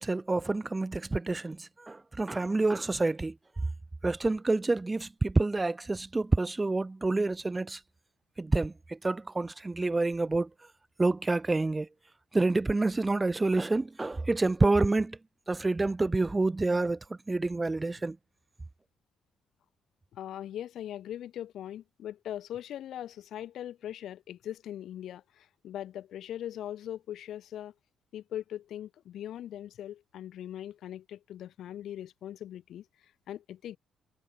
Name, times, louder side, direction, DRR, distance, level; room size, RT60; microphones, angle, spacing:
voice 1, 0.0-3.3 4.0-7.8 8.4-10.5 11.0-11.9 12.3-15.2 15.5-17.0 17.3-18.2, right 2 dB, 15° right, 1.1 m, -28 dB
voice 2, 20.1-27.7 28.1-32.8 33.3-33.8, left 11 dB, 70° left, 3.3 m, -40 dB
cardioid pair, 110°, 0 cm